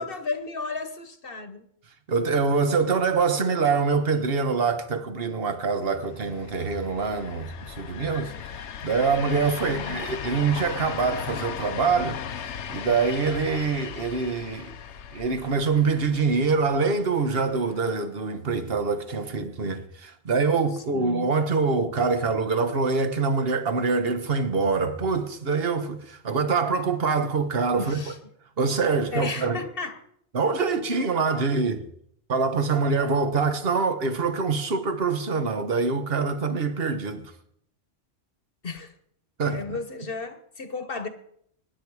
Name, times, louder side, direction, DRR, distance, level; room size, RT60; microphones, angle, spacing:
voice 1, 0.0-1.6 9.7-10.0 14.9-15.0 20.9-21.3 27.8-28.2 29.1-30.0 38.6-38.9 39.4-41.1, left 4 dB, 50° left, 1.4 m, -34 dB
voice 2, 2.1-14.7 15.1-28.0 28.6-29.6 30.3-31.8 32.3-37.2 39.4-39.8, right 4 dB, 50° right, 1.4 m, -25 dB
sound 1, 6.0-17.9, left 8 dB, 70° left, 1.1 m, -37 dB
23.5 x 10.5 x 4.8 m
omnidirectional pair, 1.3 m